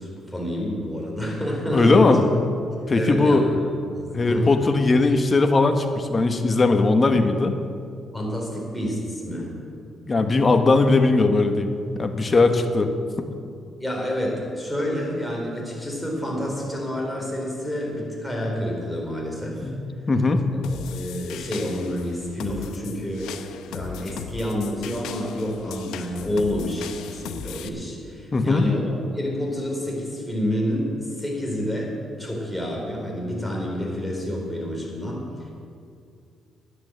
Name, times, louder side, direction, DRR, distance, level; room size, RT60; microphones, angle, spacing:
voice 1, 0.0-2.1 2.9-3.7 3.9-4.5 8.1-9.5 13.8-19.7 20.7-31.9 32.2-35.5, equal, 5° left, -2 dB, 4.2 m, -29 dB
voice 2, 1.7-2.2 2.9-3.5 4.1-7.5 10.1-11.7 11.9-12.9 13.2-13.3 19.6-19.8 20.1-20.4 28.3-28.6, left 3 dB, 30° left, 6 dB, 1.3 m, -19 dB
sound 1, 20.6-27.7, left 8 dB, 85° left, 0.7 m, -38 dB
11.0 x 10.0 x 7.5 m, 2.4 s
cardioid pair, 90°, 0 cm